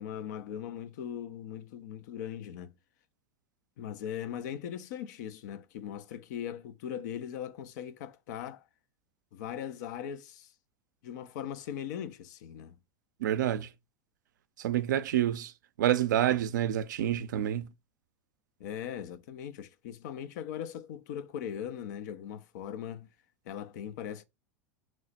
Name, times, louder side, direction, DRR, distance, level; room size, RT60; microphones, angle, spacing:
voice 1, 0.0-2.7 3.8-8.6 9.3-10.5 11.0-12.8 18.6-23.1 23.5-24.2, left 9 dB, 70° left, 0.5 m, -39 dB
voice 2, 13.2-13.7 14.6-15.5 15.8-17.7, right 11 dB, 85° right, 0.4 m, -28 dB
3.0 x 2.1 x 4.0 m
hypercardioid pair, 100°, 10 cm